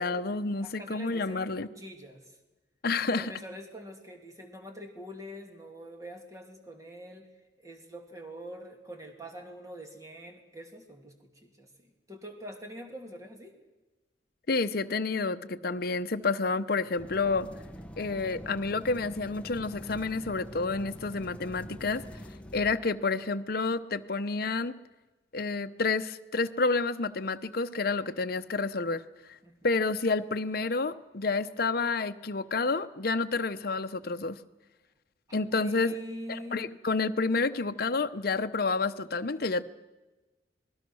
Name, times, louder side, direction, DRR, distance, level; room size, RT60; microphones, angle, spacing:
voice 1, 0.0-1.7 2.8-3.3 14.5-17.5 18.0-22.0 22.5-24.7 25.3-29.0 29.3-29.4 29.6-34.4 35.3-36.0 36.3-39.6, left 3 dB, 55° left, 9 dB, 0.8 m, -29 dB
voice 2, 0.6-2.3 3.1-7.3 7.6-11.1 11.4-13.5 29.4-29.6 35.5-36.6, equal, 20° right, 3 dB, 2.7 m, -44 dB
sound 1, 17.0-22.7, equal, 5° left, 0.9 m, -44 dB
26.5 x 20.0 x 6.3 m, 1.1 s
head